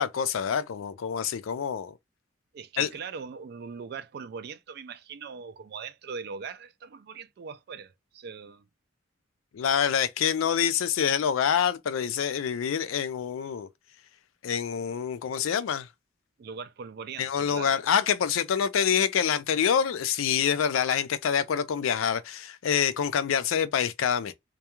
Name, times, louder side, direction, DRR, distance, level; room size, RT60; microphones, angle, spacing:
voice 1, 0.0-1.9 2.8-2.9 9.5-13.7 14.4-15.9 17.2-24.3, left 8 dB, 90° left, 0.4 m, -26 dB
voice 2, 2.5-8.7 16.4-17.8, right 5 dB, 50° right, 0.3 m, -40 dB
2.3 x 2.2 x 2.9 m
head